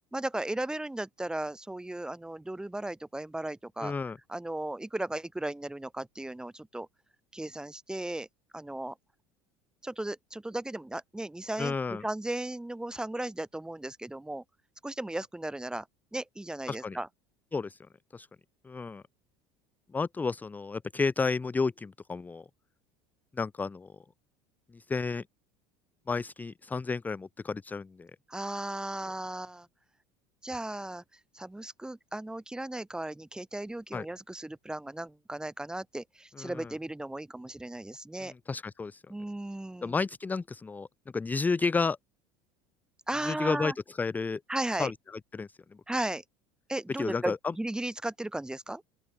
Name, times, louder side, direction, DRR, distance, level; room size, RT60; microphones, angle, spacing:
voice 1, 0.1-3.9 4.3-6.9 7.3-8.3 8.5-8.9 9.8-14.4 14.8-15.9 16.1-17.1 28.3-29.7 30.4-31.0 31.3-38.3 39.1-40.0 43.1-43.7 44.5-44.9 45.9-46.2 46.7-48.8, right 1 dB, 5° right, 1.2 m, -36 dB
voice 2, 3.8-4.2 11.6-12.0 16.7-17.0 17.5-17.8 18.1-18.3 18.6-19.0 19.9-22.4 23.4-23.9 24.7-25.2 26.1-28.1 33.9-34.1 36.4-36.7 38.2-39.0 39.8-40.9 41.1-42.0 43.2-44.4 44.8-44.9 45.3-45.5 47.0-47.5, left 4 dB, 15° left, 0.5 m, -31 dB
open air
supercardioid pair, 110°, 13 cm